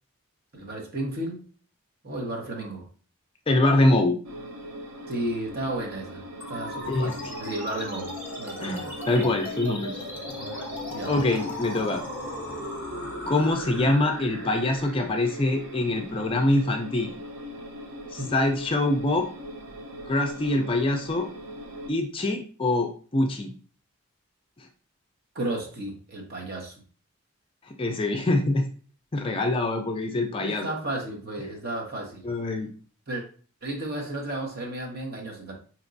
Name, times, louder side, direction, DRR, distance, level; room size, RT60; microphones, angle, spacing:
voice 1, 0.5-1.4 2.0-2.9 5.1-8.1 8.4-9.3 10.4-10.5 10.9-11.1 18.2-18.3 25.3-26.7 30.4-32.2 33.1-33.2 33.6-35.5, right 1 dB, 45° right, -1 dB, 0.9 m, -33 dB
voice 2, 3.5-4.2 6.9-7.1 8.6-9.9 11.1-12.0 13.3-17.2 18.1-19.3 20.1-21.3 21.9-23.5 27.8-28.7 29.1-30.7 32.2-32.7, left 2 dB, 25° left, 3 dB, 0.3 m, -24 dB
sound 1, 4.2-21.9, left 1 dB, 80° right, 0.6 m, -40 dB
sound 2, 6.4-17.4, left 1 dB, 10° right, 1.1 m, -38 dB
4.2 x 2.9 x 2.5 m, 0.41 s
head